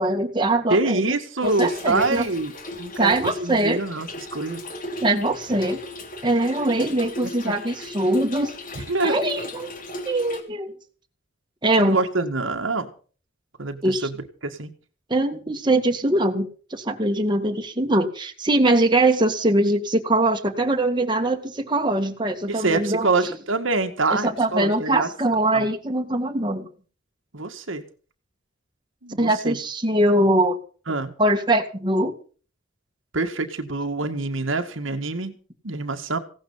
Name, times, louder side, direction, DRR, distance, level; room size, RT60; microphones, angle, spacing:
voice 1, 0.0-1.2 1.4-2.2 3.0-3.8 5.0-5.8 6.2-8.5 9.0-9.7 10.1-10.7 11.6-12.0 13.8-14.1 15.1-23.1 24.1-26.7 29.2-30.6 31.2-32.1, right 1 dB, 25° right, 4 dB, 1.9 m, -22 dB
voice 2, 0.7-4.6 7.5-7.6 8.8-9.2 11.8-12.9 13.6-14.2 14.4-14.7 22.5-25.1 25.5-25.7 27.3-27.8 29.0-29.6 30.9-31.1 33.1-35.4 35.6-36.2, right 3 dB, 70° right, 6 dB, 1.9 m, -25 dB
Trickle dribble / Fill (with liquid), 1.4-10.4, left 1 dB, 45° left, 2.8 m, -37 dB
17.0 x 12.0 x 5.8 m, 0.41 s
head